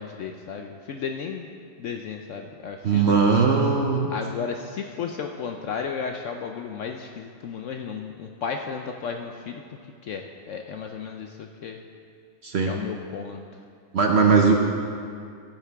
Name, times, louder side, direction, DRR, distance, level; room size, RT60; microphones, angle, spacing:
voice 1, 0.0-1.5 1.8-3.2 4.1-11.8 12.7-13.4, left 6 dB, 70° left, 4 dB, 0.7 m, -34 dB
voice 2, 2.8-4.1 12.4-12.8 13.9-14.5, right 5 dB, 55° right, 2 dB, 0.7 m, -19 dB
14.5 x 8.3 x 3.4 m, 2.3 s
omnidirectional pair, 1.7 m